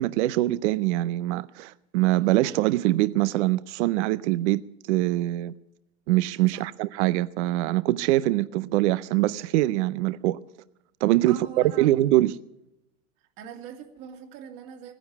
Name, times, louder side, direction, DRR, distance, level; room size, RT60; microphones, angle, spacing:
voice 1, 0.0-5.5 6.1-10.4 11.0-11.5 11.8-12.3, right 16 dB, 60° right, 0.6 m, -23 dB
voice 2, 11.3-11.9 13.4-14.9, right 7 dB, 45° right, 2.5 m, -42 dB
17.0 x 10.0 x 8.1 m
supercardioid pair, 145°, 40 cm